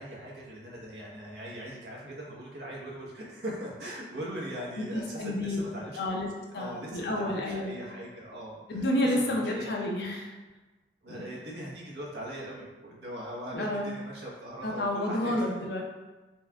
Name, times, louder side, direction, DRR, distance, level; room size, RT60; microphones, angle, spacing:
voice 1, 0.0-6.1 6.6-9.8 11.0-15.4, right 1 dB, 75° right, -4 dB, 1.0 m, -40 dB
voice 2, 4.9-5.6 6.0-6.3 6.5-7.8 8.7-10.3 11.1-11.2 13.5-13.9 14.6-15.8, left 1 dB, 70° left, 0 dB, 0.6 m, -30 dB
4.3 x 2.2 x 3.5 m, 1.2 s
head